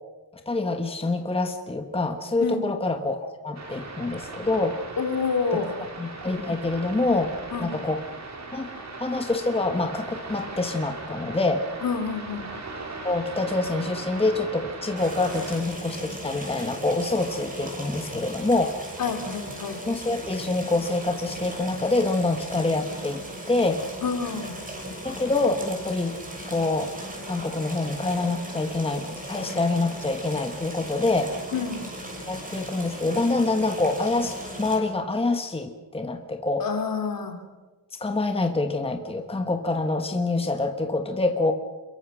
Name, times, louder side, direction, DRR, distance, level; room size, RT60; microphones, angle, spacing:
voice 1, 0.5-4.8 5.5-5.6 6.0-7.3 7.6-8.0 8.5-8.7 9.0-11.6 13.0-18.8 19.9-23.2 23.5-23.8 25.0-26.1 26.5-26.9 27.3-31.3 32.3-36.6 38.0-41.5, left 2 dB, 15° left, 5 dB, 1.3 m, -26 dB
sound 1, 3.5-15.6, right 3 dB, 45° right, 4.3 m, -39 dB
voice 2, 5.0-5.7 7.5-7.7 11.8-12.4 19.0-19.8 24.0-24.5 31.5-31.8 36.6-37.3, left 5 dB, 60° left, 5 dB, 3.2 m, -28 dB
sound 2, 15.0-34.8, equal, 20° right, 6.4 m, -37 dB
28.5 x 22.5 x 6.2 m, 1.3 s
wide cardioid pair, 155°, 38 cm